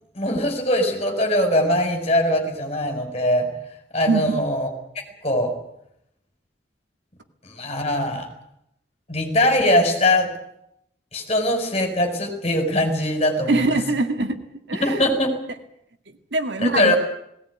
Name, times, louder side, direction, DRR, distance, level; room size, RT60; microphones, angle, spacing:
voice 1, 0.1-3.5 3.9-4.7 4.9-5.5 7.4-8.3 9.1-10.3 11.1-13.8 14.8-15.3 16.6-17.0, left 1 dB, 35° left, 5 dB, 4.8 m, -21 dB
voice 2, 4.1-4.4 13.5-14.4 14.7-15.1 16.3-17.0, right 2 dB, 75° right, 7 dB, 2.0 m, -22 dB
19.0 x 18.0 x 9.4 m, 0.78 s
head